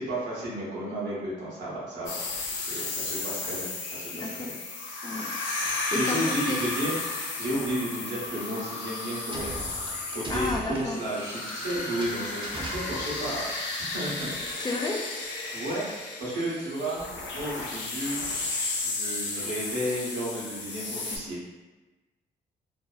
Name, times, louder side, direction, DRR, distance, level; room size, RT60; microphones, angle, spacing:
voice 1, 0.0-4.5 5.9-9.5 10.1-13.4 13.8-14.3 15.5-17.0 17.3-18.2 18.8-21.4, right 1 dB, 80° right, -6 dB, 0.9 m, -33 dB
sound 1, 2.1-21.2, left 3 dB, 85° left, 0.4 m, -33 dB
voice 2, 4.1-4.5 5.0-5.4 5.6-6.6 7.5-7.6 10.3-11.0 14.6-15.0, left 2 dB, 25° left, 1 dB, 0.4 m, -32 dB
sound 2, 9.3-13.4, right 2 dB, 30° right, 0.5 m, -39 dB
2.6 x 2.0 x 2.3 m, 1.2 s
supercardioid pair, 55°, 19 cm